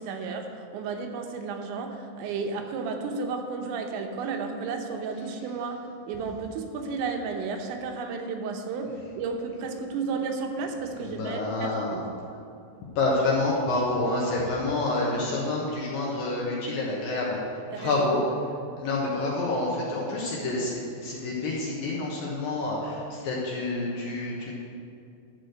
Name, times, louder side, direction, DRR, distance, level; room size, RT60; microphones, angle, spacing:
voice 1, 0.0-5.8 6.1-12.1 17.7-18.1, right 4 dB, 80° right, 4 dB, 3.2 m, -33 dB
voice 2, 11.0-12.0 13.0-17.4 17.8-18.2 18.8-24.6, left 2 dB, 65° left, -4 dB, 2.4 m, -28 dB
12.0 x 4.9 x 7.8 m, 2.5 s
omnidirectional pair, 5.3 m